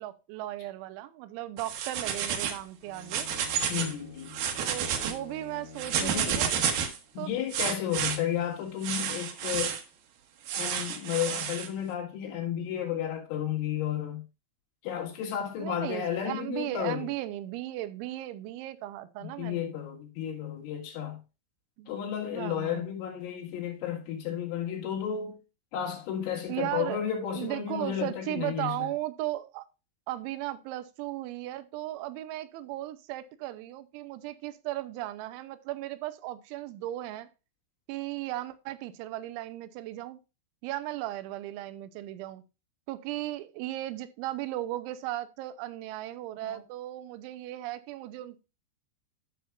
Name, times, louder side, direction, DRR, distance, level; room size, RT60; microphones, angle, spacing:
voice 1, 0.0-3.3 4.6-6.5 7.2-7.3 15.6-19.7 21.8-21.9 22.3-22.9 26.5-27.1 27.3-29.7 30.1-37.3 37.9-40.2 40.6-42.4 42.9-48.4, right 15 dB, 90° right, 3.0 m, -36 dB
sound 1, 1.6-2.6 3.0-3.9 4.3-5.1 5.8-7.0 7.5-8.2 8.8-9.8 10.5-11.7, right 8 dB, 75° right, 2.3 m, -30 dB
Bowed string instrument, 2.8-7.0, left 4 dB, 70° left, 3.0 m, -49 dB
voice 2, 3.7-4.4 6.0-6.4 7.1-9.8 10.5-14.2 14.8-17.1 19.2-21.2 21.9-25.4 25.7-28.9 46.4-46.6, left 10 dB, 85° left, 4.1 m, -33 dB
13.0 x 5.8 x 2.4 m
omnidirectional pair, 5.4 m